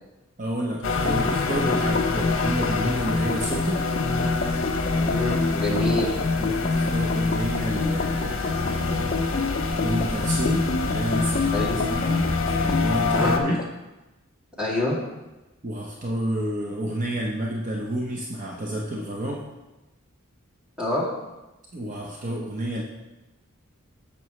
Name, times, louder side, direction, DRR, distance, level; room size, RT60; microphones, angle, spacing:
voice 1, 0.4-3.8 6.4-9.3 9.8-13.6 15.6-19.4 21.7-22.8, right 1 dB, 35° right, -2 dB, 0.8 m, -30 dB
sound 1, 0.8-13.4, left 3 dB, 65° left, 1.1 m, -28 dB
sound 2, 1.0-13.7, left 3 dB, 40° left, 0.5 m, -27 dB
voice 2, 4.9-6.2 11.5-11.8 13.1-13.6 14.6-15.0 20.8-21.0, left 1 dB, 5° right, -7 dB, 2.6 m, -26 dB
11.0 x 7.6 x 3.2 m, 1.1 s
head